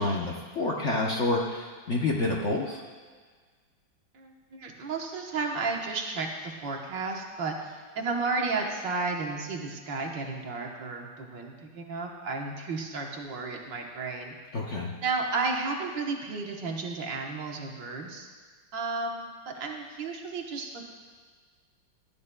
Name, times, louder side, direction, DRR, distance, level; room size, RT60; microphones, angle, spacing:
voice 1, 0.0-2.8 14.5-14.9, left 2 dB, 50° left, -2 dB, 0.9 m, -28 dB
voice 2, 4.1-14.3 15.0-18.3 18.7-20.9, right 3 dB, 70° right, 1 dB, 1.8 m, -33 dB
18.0 x 12.0 x 2.2 m, 1.5 s
omnidirectional pair, 2.1 m